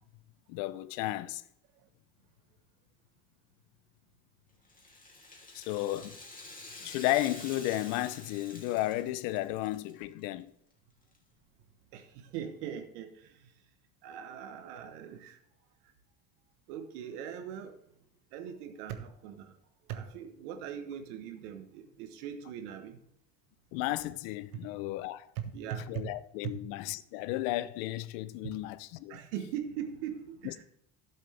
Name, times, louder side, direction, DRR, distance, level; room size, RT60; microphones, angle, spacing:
voice 1, 0.5-1.4 5.5-6.2 6.8-10.5 23.7-25.3 25.9-29.2 30.4-30.6, left 15 dB, 80° left, 0.7 m, -33 dB
Rattle (instrument), 4.6-9.9 10.2-10.3 11.1-11.2, left 2 dB, 20° left, 2.8 m, -48 dB
voice 2, 11.9-13.5 14.0-15.4 16.7-17.8 18.3-19.6 19.9-23.0 25.3-26.1 26.5-26.6 28.4-28.5 29.1-30.6, right 9 dB, 85° right, 1.3 m, -40 dB
11.5 x 7.4 x 3.4 m
hypercardioid pair, 65°, 44 cm